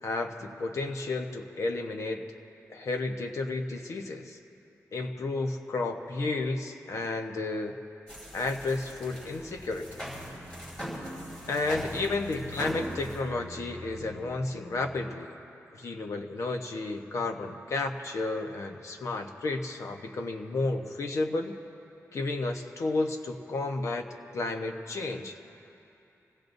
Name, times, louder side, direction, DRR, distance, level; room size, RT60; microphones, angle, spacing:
voice 1, 0.0-2.3 2.7-4.4 4.9-7.8 8.3-10.0 11.5-15.3 15.7-21.5 22.1-24.1 24.3-25.4, left 3 dB, 65° left, 4 dB, 1.0 m, -32 dB
sound 1, 8.1-13.2, equal, 15° left, 4.6 m, -40 dB
sound 2, 9.0-15.0, left 1 dB, 35° left, 2.6 m, -47 dB
27.5 x 17.5 x 2.7 m, 2.9 s
wide cardioid pair, 125°, 6 cm